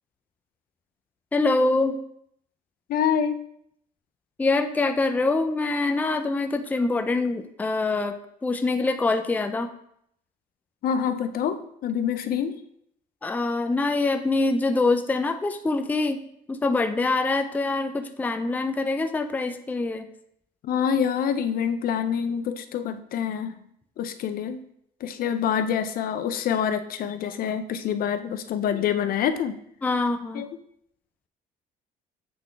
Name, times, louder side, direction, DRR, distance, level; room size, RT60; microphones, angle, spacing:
voice 1, 1.3-2.0 4.4-8.2 8.4-9.7 13.2-16.2 16.5-20.1 29.8-30.5, left 3 dB, 10° left, 7 dB, 0.4 m, -24 dB
voice 2, 2.9-3.4 10.8-12.6 20.6-23.6 24.0-24.6 25.0-29.5 30.3-30.5, left 8 dB, 60° left, 10 dB, 0.5 m, -26 dB
7.8 x 3.8 x 3.4 m, 0.71 s
cardioid pair, 110°, 17 cm